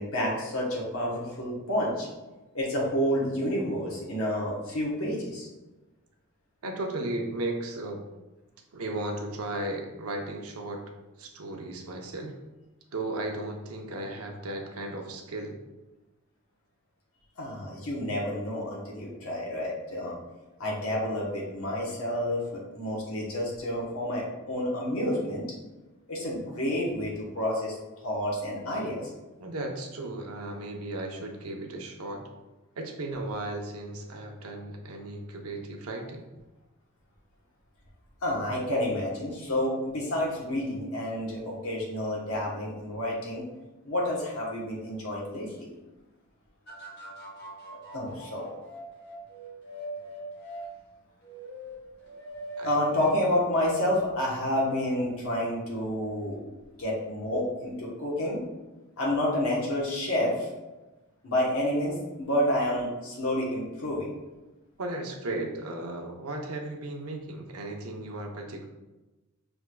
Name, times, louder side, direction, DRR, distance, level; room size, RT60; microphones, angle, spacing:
voice 1, 0.0-2.1 2.5-5.5 17.4-20.1 20.6-25.5 26.1-27.8 28.0-29.0 38.2-43.4 43.8-45.7 47.9-48.5 52.6-56.4 56.8-58.4 59.0-60.5 61.2-64.1, left 1 dB, 70° left, -4 dB, 1.0 m, -29 dB
voice 2, 6.6-8.0 8.7-10.8 11.2-12.4 12.9-15.6 29.4-32.2 32.8-36.2 52.6-52.8 64.8-68.7, right 2 dB, 75° right, 2 dB, 0.7 m, -35 dB
sound 1, 46.7-50.7 51.2-53.2 53.6-53.7, right 1 dB, 50° left, 0.9 m, -40 dB
5.9 x 3.4 x 2.2 m, 1.1 s
head